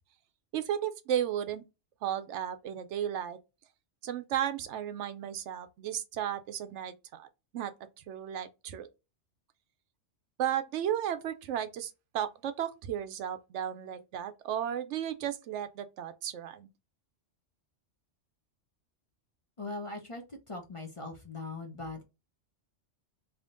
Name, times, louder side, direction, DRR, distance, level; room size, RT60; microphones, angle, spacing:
voice 1, 0.5-1.6 2.0-3.4 4.0-7.3 7.5-7.7 8.1-8.9 10.4-16.7, right 10 dB, 80° right, 0.9 m, -34 dB
voice 2, 19.6-22.0, left 3 dB, 35° left, 0.7 m, -40 dB
3.5 x 2.8 x 3.7 m
omnidirectional pair, 1.2 m